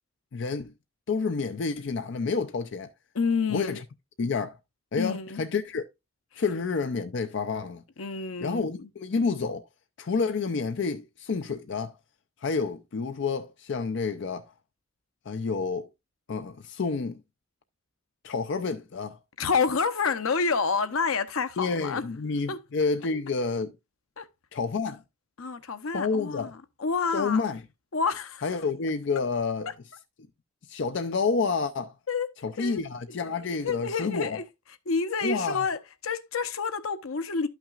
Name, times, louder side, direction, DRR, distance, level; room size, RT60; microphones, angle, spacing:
voice 1, 0.3-0.7 1.1-2.9 3.5-3.8 4.2-4.6 4.9-5.9 6.4-7.8 8.4-9.6 10.0-11.9 12.4-14.5 15.3-15.9 16.3-17.2 18.2-19.2 21.6-23.7 24.5-25.0 25.9-26.5 27.1-27.6 28.4-29.7 30.7-31.9 32.4-34.4 35.2-35.7, left 4 dB, 60° left, 0.5 m, -29 dB
voice 2, 3.1-3.8 5.0-5.4 6.3-6.4 8.0-8.9 19.4-22.0 22.5-22.6 24.2-24.3 25.4-27.4 27.9-28.4 32.1-32.3 32.6-32.8 33.3-34.4 34.9-37.5, left 5 dB, 85° left, 0.8 m, -29 dB
12.0 x 5.9 x 2.4 m
head